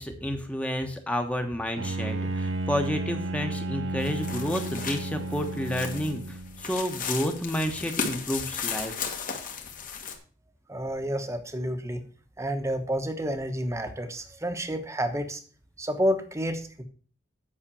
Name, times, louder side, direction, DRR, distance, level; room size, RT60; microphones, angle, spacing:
voice 1, 0.0-8.9, equal, 5° left, 5 dB, 1.1 m, -30 dB
Bowed string instrument, 1.8-6.7, right 2 dB, 85° right, 0.9 m, -33 dB
sound 1, 4.0-10.1, left 6 dB, 45° left, 1.6 m, -35 dB
voice 2, 10.7-12.0 12.4-15.4 15.8-16.8, equal, 15° right, 7 dB, 1.1 m, -29 dB
8.8 x 6.0 x 6.9 m, 0.43 s
head